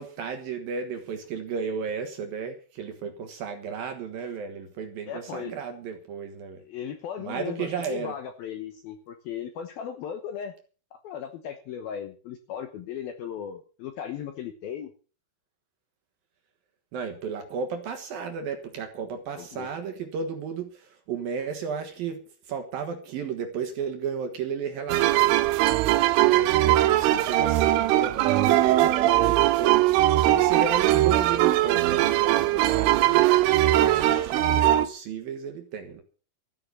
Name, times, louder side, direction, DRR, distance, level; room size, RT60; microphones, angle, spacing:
voice 1, 0.0-6.6 7.2-8.2 16.9-25.4 26.1-29.7 30.1-33.4 33.7-36.0, right 6 dB, 60° right, 6 dB, 2.7 m, -33 dB
voice 2, 5.1-5.5 6.6-10.5 10.9-14.9 19.4-19.7 28.8-29.3 32.5-32.9, left 8 dB, 70° left, 7 dB, 2.4 m, -37 dB
sound 1, 24.9-34.9, right 15 dB, 85° right, 3.4 m, -21 dB
14.0 x 10.0 x 6.9 m, 0.39 s
omnidirectional pair, 5.5 m